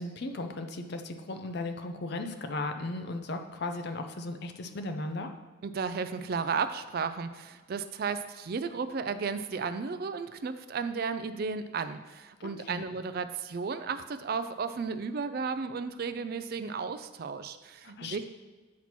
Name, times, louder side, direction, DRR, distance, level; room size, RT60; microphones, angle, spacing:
voice 1, 0.0-5.3 12.4-12.8 17.8-18.2, left 2 dB, 50° left, 6 dB, 0.5 m, -36 dB
voice 2, 5.6-18.2, right 5 dB, 45° right, 11 dB, 0.3 m, -34 dB
8.4 x 2.9 x 5.9 m, 1.3 s
head